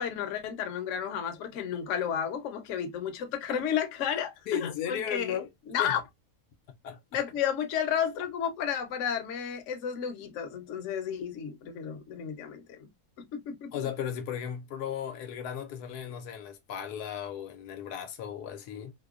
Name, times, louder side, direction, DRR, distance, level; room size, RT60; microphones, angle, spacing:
voice 1, 0.0-5.4 5.7-6.0 7.1-12.9 13.2-13.7, left 8 dB, 65° left, 0.9 m, -32 dB
voice 2, 4.5-5.5 5.8-6.0 6.8-7.2 13.7-18.9, left 8 dB, 90° left, 1.1 m, -36 dB
2.8 x 2.1 x 2.3 m
omnidirectional pair, 1.6 m